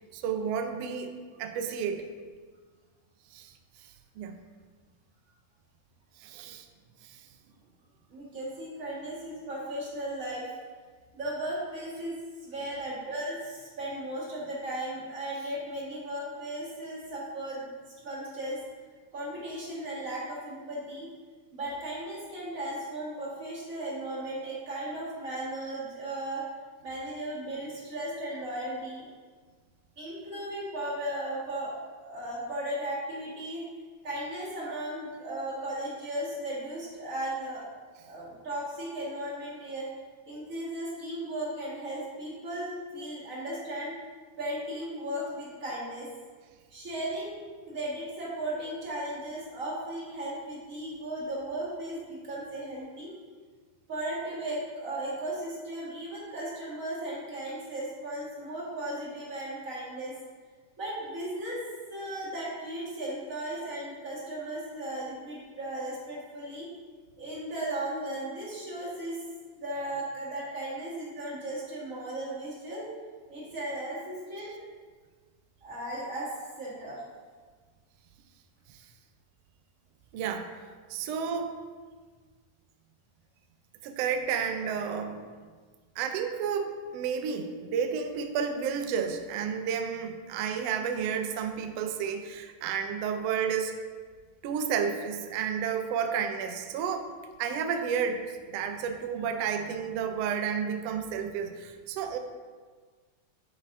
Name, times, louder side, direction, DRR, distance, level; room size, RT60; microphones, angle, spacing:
voice 1, 0.1-2.0 3.3-3.5 4.2-4.4 6.2-6.7 7.0-7.2 80.1-80.5 80.9-81.6 83.8-85.2 86.0-93.7 94.4-97.1 97.4-102.2, right 7 dB, 85° right, 5 dB, 1.4 m, -31 dB
voice 2, 8.1-10.5 11.1-12.2 12.4-17.7 18.0-18.6 19.1-21.1 21.5-26.4 26.8-29.1 30.0-33.6 34.0-37.7 38.0-39.9 40.3-43.9 44.4-46.1 46.7-53.1 53.9-60.1 60.8-61.6 61.9-66.7 67.2-69.2 69.6-72.9 73.3-74.5 75.6-76.3 76.6-77.0, right 1 dB, 30° right, -7 dB, 1.6 m, -36 dB
10.5 x 5.4 x 2.7 m, 1.5 s
omnidirectional pair, 3.6 m